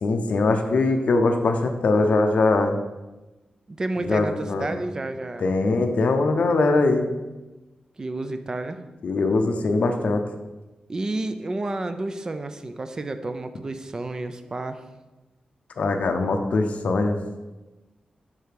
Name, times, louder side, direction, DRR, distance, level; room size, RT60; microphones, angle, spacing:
voice 1, 0.0-2.8 4.0-4.7 5.4-7.1 9.0-10.2 15.8-17.2, left 3 dB, 55° left, 5 dB, 0.5 m, -21 dB
voice 2, 3.7-5.5 8.0-8.8 10.9-14.8, right 2 dB, 25° right, 9 dB, 0.4 m, -30 dB
5.5 x 4.7 x 5.1 m, 1.1 s
wide cardioid pair, 180°, 3 cm